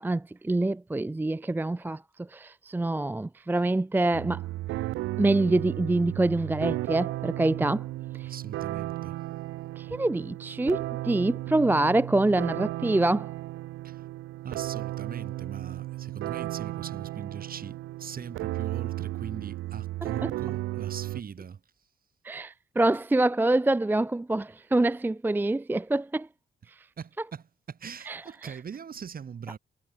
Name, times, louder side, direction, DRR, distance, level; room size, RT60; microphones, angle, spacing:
voice 1, 0.0-2.0 2.3-4.4 5.2-7.9 8.2-8.3 9.8-13.3 20.0-20.3 22.2-26.3 28.1-28.2, right 2 dB, 10° right, 0.5 m, -26 dB
sound 1, 4.1-21.2, right 17 dB, 90° right, 0.9 m, -34 dB
voice 2, 8.2-9.2 13.8-14.0 14.4-21.6 27.0-29.6, right 7 dB, 45° right, 4.6 m, -41 dB
cardioid pair, 90°, 20 cm